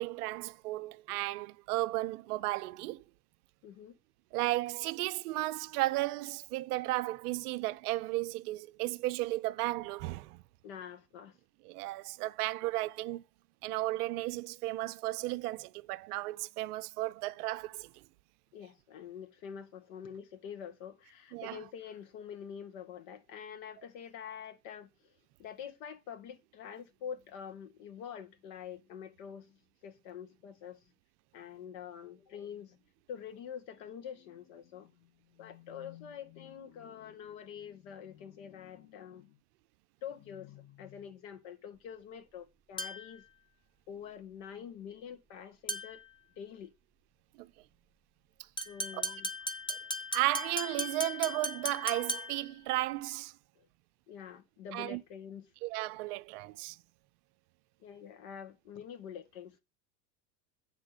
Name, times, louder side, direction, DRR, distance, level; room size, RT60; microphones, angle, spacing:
voice 1, 0.0-3.0 4.3-10.4 11.6-13.2 13.6-17.9 21.3-21.6 47.4-47.5 48.9-49.1 49.7-49.8 50.1-53.3 54.7-55.0 55.6-56.8, right 18 dB, 65° right, 0.7 m, -34 dB
voice 2, 3.6-4.0 10.6-11.4 18.5-25.1 25.4-30.8 31.3-32.8 33.1-39.4 40.0-43.2 43.9-46.0 46.4-46.7 48.7-49.3 53.6-53.7 54.1-55.5 57.8-59.6, left 8 dB, 60° left, 1.8 m, -46 dB
sound 1, 42.8-43.2 45.7-46.1 48.6-52.5, equal, 10° left, 1.1 m, -37 dB
8.2 x 3.8 x 6.6 m
hypercardioid pair, 90°, 49 cm